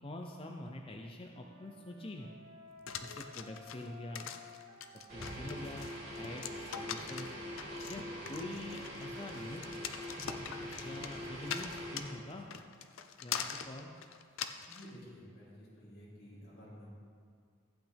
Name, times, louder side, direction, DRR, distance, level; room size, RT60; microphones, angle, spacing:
voice 1, 0.0-2.3 3.0-4.3 5.1-7.3 7.9-8.0 8.3-9.6 10.8-12.5 13.2-13.9, left 1 dB, 25° left, 1 dB, 0.5 m, -45 dB
Wind instrument woodwind instrument, 1.3-5.5 6.1-9.3, equal, 55° right, 1.4 m, -55 dB
sound 1, 2.9-14.9, left 8 dB, 85° left, 0.6 m, -43 dB
sound 2, 5.1-12.2, equal, 35° right, 3.1 m, -43 dB
voice 2, 14.7-16.9, equal, 50° left, -8 dB, 2.9 m, -52 dB
15.0 x 8.4 x 3.5 m, 2.2 s
head